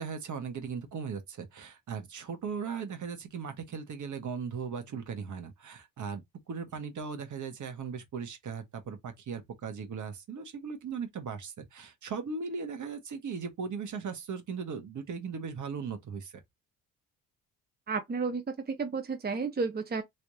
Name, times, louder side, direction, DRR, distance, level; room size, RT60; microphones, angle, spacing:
voice 1, 0.0-6.2 6.5-16.3, right 5 dB, 50° right, 1.4 m, -38 dB
voice 2, 17.9-20.0, right 4 dB, 25° right, 0.9 m, -32 dB
3.2 x 3.1 x 2.7 m
supercardioid pair, 70°, 37 cm